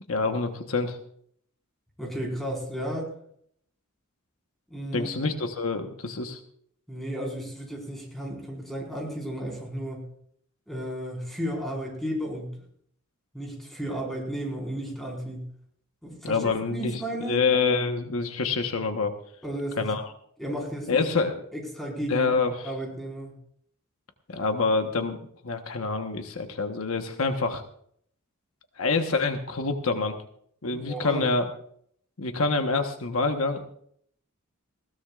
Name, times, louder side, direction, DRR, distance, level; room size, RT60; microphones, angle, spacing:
voice 1, 0.1-1.0 4.9-6.4 16.2-17.0 17.3-19.2 19.8-20.0 20.9-21.4 22.1-22.5 24.3-25.2 25.4-27.6 28.8-30.1 30.6-31.4 32.2-33.6, left 4 dB, 75° left, 6 dB, 1.2 m, -26 dB
voice 2, 2.0-3.1 4.7-5.3 6.9-10.1 10.7-12.6 13.3-15.5 16.0-17.4 19.4-19.9 20.4-21.0 21.5-22.3 22.6-23.3 30.7-31.3, right 1 dB, ahead, -1 dB, 4.8 m, -33 dB
20.0 x 16.5 x 2.5 m, 0.65 s
head